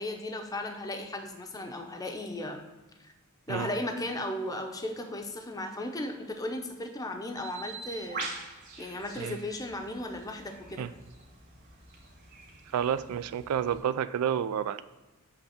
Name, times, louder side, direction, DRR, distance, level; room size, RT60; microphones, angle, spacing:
voice 1, 0.0-2.6 3.0-3.1 3.5-8.3 8.8-10.9, left 1 dB, 15° left, 4 dB, 0.6 m, -36 dB
Bird, 7.4-13.8, right 3 dB, 50° right, 2.5 m, -44 dB
voice 2, 12.7-14.8, right 9 dB, 85° right, 14 dB, 0.3 m, -30 dB
8.0 x 3.5 x 5.7 m, 1.1 s
head